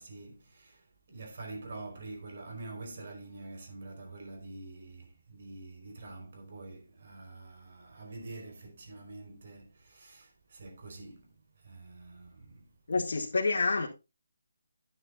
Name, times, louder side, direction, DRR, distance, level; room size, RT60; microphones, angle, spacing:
voice 1, 0.0-12.7, right 2 dB, 50° right, 4.6 m, -46 dB
voice 2, 12.9-13.9, left 3 dB, 70° left, 2.2 m, -28 dB
11.0 x 9.2 x 2.5 m
hypercardioid pair, 170°, 0 cm